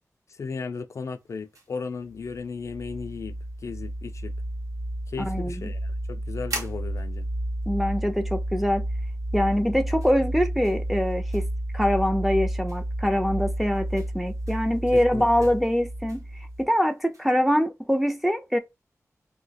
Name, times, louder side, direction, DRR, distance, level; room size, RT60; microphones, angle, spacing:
voice 1, 0.3-3.4 3.6-4.3 5.1-7.3 14.9-15.5, left 5 dB, 60° left, 0.3 m, -35 dB
sound 1, 0.9-17.4, right 2 dB, 75° right, 1.0 m, -47 dB
sound 2, 2.2-16.7, right 1 dB, 45° right, 0.6 m, -31 dB
voice 2, 5.2-5.5 7.7-8.8 9.3-11.5 11.7-16.2 16.6-18.6, equal, 5° right, 0.4 m, -24 dB
2.7 x 2.1 x 4.0 m
wide cardioid pair, 115°, 6 cm